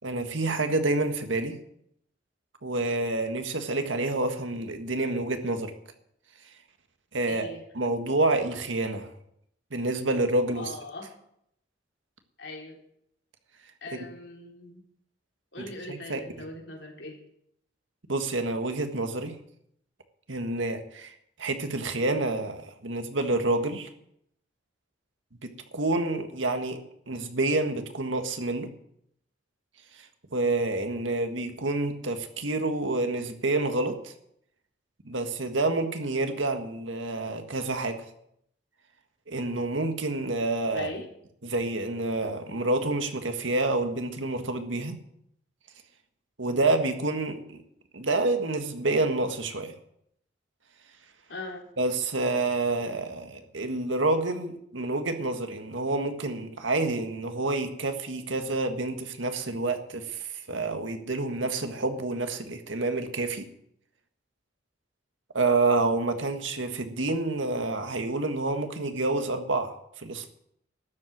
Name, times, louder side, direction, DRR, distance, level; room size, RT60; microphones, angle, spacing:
voice 1, 0.0-1.6 2.6-5.7 7.1-9.1 9.7-10.7 15.9-16.2 18.1-19.4 20.3-23.9 25.4-26.8 27.1-28.7 29.9-34.1 35.0-38.0 39.3-40.9 41.4-45.0 46.4-47.6 47.9-49.7 51.8-63.5 65.3-70.3, right 2 dB, 90° right, 7 dB, 1.7 m, -28 dB
voice 2, 7.3-7.7 10.5-11.1 12.4-12.8 13.8-14.8 15.5-17.2 40.7-41.1 51.3-51.7, left 2 dB, 70° left, 1 dB, 3.4 m, -40 dB
13.0 x 7.8 x 9.3 m, 0.72 s
head